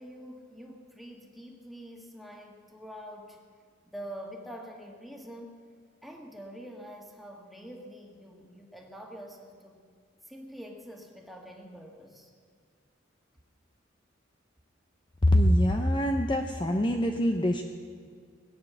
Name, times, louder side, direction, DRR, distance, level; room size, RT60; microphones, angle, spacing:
voice 1, 0.0-3.4 3.8-5.5 6.0-9.8 10.3-12.3, equal, ahead, 0 dB, 1.9 m, -45 dB
voice 2, 15.2-17.6, equal, 25° left, 4 dB, 0.7 m, -24 dB
20.0 x 9.4 x 7.0 m, 2.1 s
head